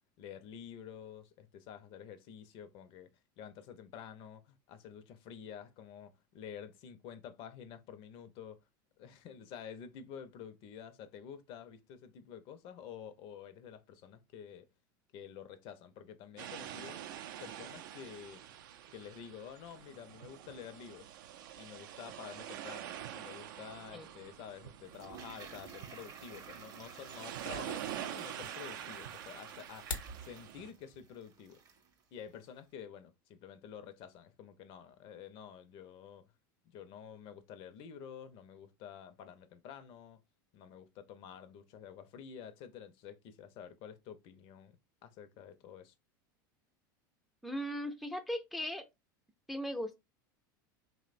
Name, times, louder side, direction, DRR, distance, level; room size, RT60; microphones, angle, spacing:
voice 1, 0.2-3.1 3.4-8.6 9.0-14.7 15.1-17.0 17.4-18.4 18.9-21.1 21.6-31.6 32.1-36.2 36.6-40.2 40.5-45.9, left 8 dB, 55° left, 0.5 m, -49 dB
sound 1, 16.4-30.7, right 11 dB, 75° right, 0.4 m, -46 dB
Toilet flush, 24.8-31.9 32.2-32.3, right 6 dB, 35° right, 0.6 m, -53 dB
sound 2, 29.6-30.2, left 4 dB, 90° left, 0.8 m, -40 dB
voice 2, 47.4-48.9 49.5-50.0, equal, ahead, 0.3 m, -38 dB
3.0 x 2.1 x 2.5 m
hypercardioid pair, 100°, 11 cm